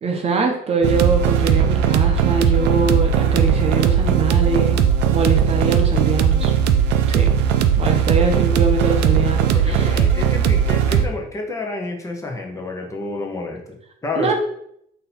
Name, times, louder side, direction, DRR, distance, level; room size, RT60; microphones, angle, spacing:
voice 1, 0.0-4.8 5.1-6.5 7.1-7.3 7.8-10.0 14.2-14.3, right 4 dB, 35° right, 3 dB, 0.7 m, -23 dB
sound 1, 0.8-11.1, right 8 dB, 90° right, 0.4 m, -18 dB
voice 2, 9.5-13.6 14.0-14.3, left 2 dB, 20° left, 0 dB, 0.9 m, -29 dB
3.8 x 2.8 x 4.2 m, 0.70 s
cardioid pair, 110°, 17 cm